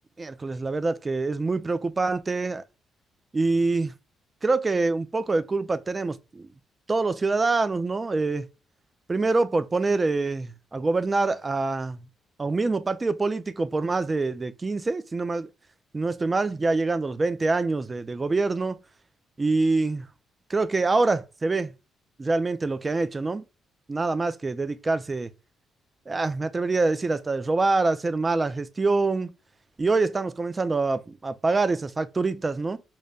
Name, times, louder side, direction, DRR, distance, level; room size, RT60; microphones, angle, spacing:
voice 1, 0.2-2.6 3.3-3.9 4.4-6.5 6.9-8.5 9.1-12.1 12.4-15.5 15.9-18.8 19.4-20.1 20.5-21.7 22.2-23.4 23.9-25.3 26.1-29.3 29.8-32.8, right 3 dB, 25° right, 0.4 m, -25 dB
5.3 x 2.1 x 2.3 m
cardioid pair, 90°, 0 cm